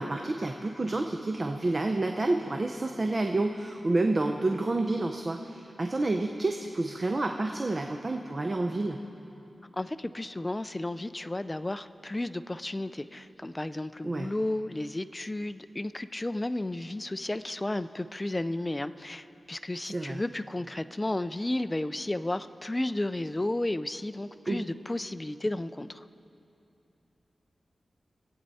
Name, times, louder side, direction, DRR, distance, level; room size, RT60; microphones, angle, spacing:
voice 1, 0.0-9.0 14.0-14.3 19.9-20.2 24.5-24.6, right 2 dB, 35° right, 4 dB, 0.6 m, -29 dB
voice 2, 9.7-26.0, left 1 dB, 20° left, 12 dB, 0.4 m, -33 dB
24.0 x 8.8 x 4.2 m, 2.8 s
wide cardioid pair, 90°, 0 cm